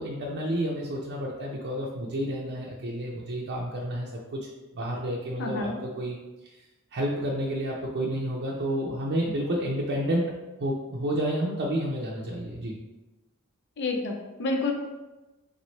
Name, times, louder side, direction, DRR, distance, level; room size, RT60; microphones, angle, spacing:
voice 1, 0.0-4.4 4.8-6.2 6.9-10.2 10.6-12.8, right 1 dB, 55° right, -4 dB, 0.6 m, -30 dB
voice 2, 5.4-5.8 13.8-14.7, left 3 dB, 55° left, 2 dB, 0.5 m, -29 dB
3.6 x 3.2 x 4.0 m, 1.1 s
head